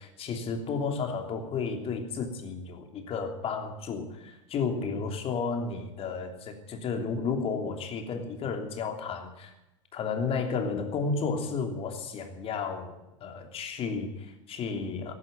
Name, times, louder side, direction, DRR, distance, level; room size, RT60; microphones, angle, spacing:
voice 1, 0.0-9.5 9.9-15.1, left 5 dB, 35° left, 5 dB, 3.1 m, -32 dB
15.5 x 11.5 x 8.0 m, 0.94 s
hypercardioid pair, 90°, 16 cm